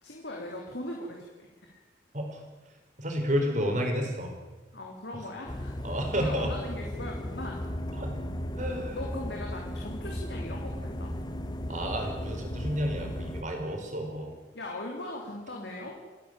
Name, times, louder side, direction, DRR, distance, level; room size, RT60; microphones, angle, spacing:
voice 1, 0.0-1.8 4.7-5.8 6.1-7.6 8.9-11.1 14.5-16.0, left 1 dB, 70° left, 0 dB, 3.4 m, -39 dB
voice 2, 2.1-2.4 3.0-4.3 5.8-6.5 8.0-8.1 8.6-9.0 11.7-14.3, equal, 45° right, 2 dB, 4.8 m, -31 dB
sound 1, 5.5-13.4, equal, 25° left, 0.9 m, -36 dB
29.0 x 10.5 x 9.1 m, 1.2 s
head